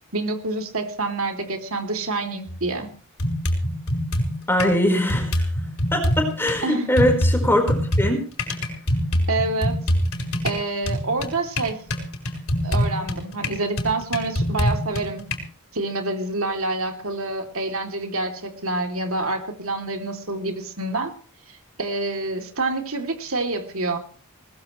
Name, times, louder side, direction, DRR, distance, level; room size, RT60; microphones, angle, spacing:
voice 1, 0.1-2.9 6.6-6.9 9.3-9.8 10.4-11.8 12.6-15.2 15.7-21.1 21.5-24.0, right 2 dB, 65° right, 4 dB, 3.2 m, -27 dB
sound 1, 2.5-2.6 3.2-4.8 5.1-6.6 7.0-15.4, equal, 65° left, 5.0 m, -24 dB
voice 2, 4.5-5.5 5.9-8.2, left 1 dB, 10° left, 3 dB, 4.7 m, -21 dB
21.0 x 20.0 x 3.3 m, 0.39 s
head